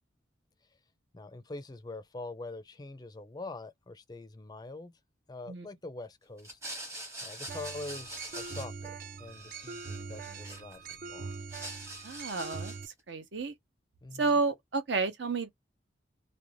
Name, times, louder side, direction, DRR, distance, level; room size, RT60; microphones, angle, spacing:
voice 1, 1.1-4.9 5.3-6.6 7.2-8.9 9.2-11.3 14.0-14.2, left 2 dB, 20° left, 0.4 m, -44 dB
sound 1, 6.4-9.0 9.3-11.0 11.3-12.9, right 1 dB, 15° right, 0.9 m, -44 dB
sound 2, 7.5-12.9, right 5 dB, 45° right, 0.4 m, -42 dB
voice 2, 12.0-13.5 14.2-15.5, right 4 dB, 70° right, 0.7 m, -31 dB
2.5 x 2.1 x 3.0 m
head